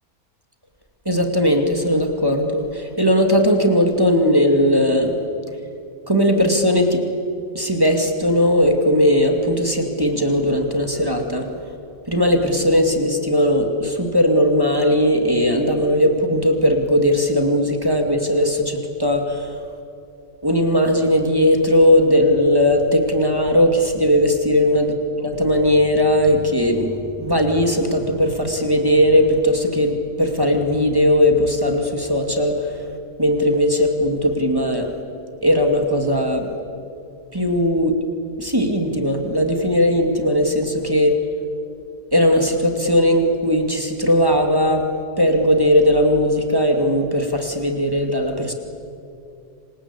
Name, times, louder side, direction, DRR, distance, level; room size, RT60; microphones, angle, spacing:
voice 1, 1.1-5.2 6.1-7.0 7.5-11.5 12.1-19.6 20.4-26.9 27.2-32.8 33.2-34.9 35.4-36.5 37.3-37.9 38.4-41.2 42.1-44.9 45.2-48.5, equal, 15° right, 3 dB, 2.3 m, -18 dB
27.0 x 25.5 x 8.4 m, 2.5 s
omnidirectional pair, 1.7 m